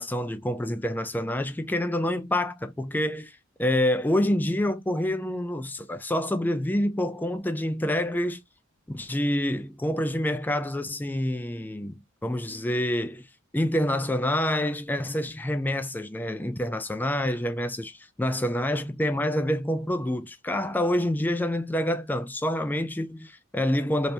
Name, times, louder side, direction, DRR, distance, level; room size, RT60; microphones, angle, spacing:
voice 1, 0.0-8.4 8.9-13.3 13.5-24.1, left 1 dB, 10° left, 0.4 m, -27 dB
3.3 x 2.6 x 2.7 m
head